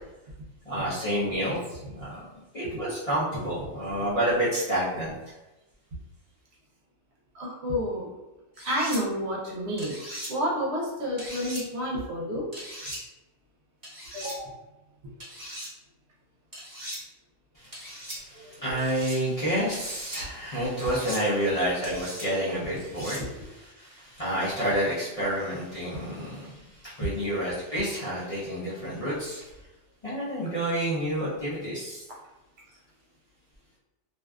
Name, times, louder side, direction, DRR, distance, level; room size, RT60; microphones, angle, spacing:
voice 1, 0.7-2.3 2.5-5.1 17.5-29.4 30.0-32.0, right 1 dB, 40° left, -10 dB, 0.5 m, -29 dB
voice 2, 7.3-8.1 8.7-9.9 10.3-12.5 14.1-14.5 18.3-18.8 27.0-27.1, equal, 65° right, -3 dB, 0.8 m, -30 dB
sound 1, 8.6-9.0 9.8-10.3 11.2-11.6 12.5-13.0 13.8-14.4 15.2-15.7 16.5-17.0 17.7-18.2 18.8-19.2 19.7-20.2 20.8-21.2 21.8-22.3 22.8-23.2, equal, 20° right, 0.9 m, -39 dB
2.5 x 2.2 x 2.2 m, 1.0 s
omnidirectional pair, 1.3 m